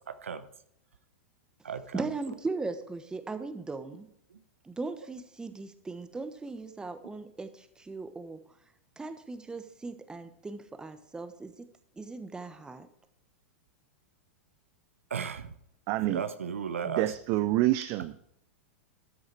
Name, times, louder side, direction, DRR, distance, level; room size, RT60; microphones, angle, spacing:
voice 1, 0.1-0.4 1.6-2.0 4.3-4.4 15.1-15.5 16.1-17.1, right 6 dB, 80° right, 12 dB, 0.9 m, -35 dB
voice 2, 1.9-4.1 4.6-8.4 9.0-11.5 12.0-12.9, right 3 dB, 10° right, 10 dB, 1.1 m, -38 dB
voice 3, 15.9-16.3 16.8-18.2, right 16 dB, 45° right, 14 dB, 0.5 m, -27 dB
13.5 x 6.3 x 4.7 m, 0.76 s
hypercardioid pair, 100°, 7 cm